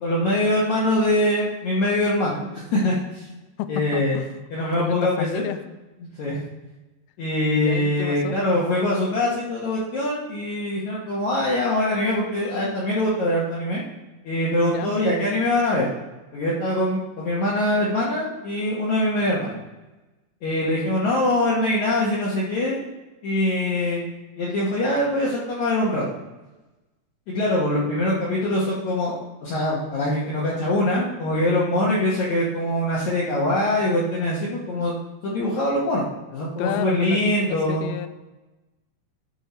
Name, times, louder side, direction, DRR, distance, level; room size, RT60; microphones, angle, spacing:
voice 1, 0.0-3.3 3.7-4.2 4.5-5.4 6.2-6.4 7.2-13.8 14.2-15.9 16.3-19.5 20.4-22.8 23.2-24.1 24.4-26.1 27.3-34.9 35.2-36.1 36.3-37.8, left 1 dB, 60° left, -6 dB, 2.3 m, -23 dB
voice 2, 3.6-4.3 4.8-5.6 7.6-8.4 14.7-14.9 31.7-32.0 36.6-38.1, left 12 dB, 85° left, 11 dB, 2.4 m, -30 dB
11.5 x 5.6 x 4.4 m, 1.1 s
omnidirectional pair, 4.6 m